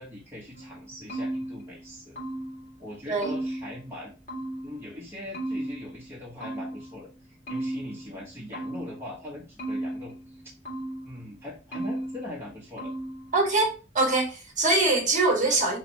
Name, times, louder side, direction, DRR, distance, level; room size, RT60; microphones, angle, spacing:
voice 1, 0.0-2.2 2.8-4.1 4.6-10.4 11.0-12.9, left 1 dB, 10° right, 1.1 m, -41 dB
sound 1, 0.5-2.7 3.2-4.9 5.3-7.0 7.5-9.1 9.6-11.2 11.7-12.5 12.8-13.4, right 1 dB, 40° left, 1.7 m, -35 dB
voice 2, 13.3-15.8, right 2 dB, 40° right, 1.4 m, -23 dB
4.9 x 3.1 x 2.8 m
head